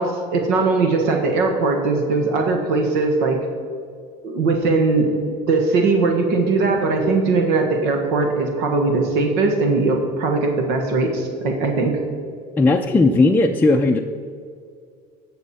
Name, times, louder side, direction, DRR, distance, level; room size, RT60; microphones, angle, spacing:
voice 1, 0.0-3.4 4.2-5.2 5.5-12.0, right 3 dB, 80° right, 3 dB, 1.5 m, -20 dB
voice 2, 12.6-14.0, left 2 dB, 10° left, 1 dB, 0.4 m, -16 dB
16.0 x 6.5 x 4.2 m, 2.3 s
cardioid pair, 130°, 17 cm